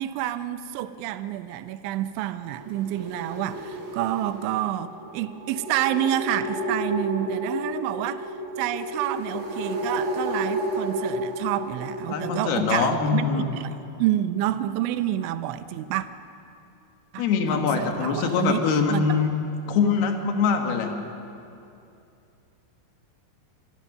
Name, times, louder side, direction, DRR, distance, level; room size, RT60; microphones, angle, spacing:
voice 1, 0.0-16.1 17.1-19.2, right 12 dB, 80° right, 12 dB, 2.9 m, -29 dB
sound 1, 2.5-12.4, right 1 dB, 40° right, 4.6 m, -31 dB
voice 2, 12.1-13.5 17.2-19.3 19.7-20.9, left 5 dB, 60° left, 4 dB, 3.0 m, -23 dB
26.0 x 21.0 x 6.7 m, 2.7 s
omnidirectional pair, 5.9 m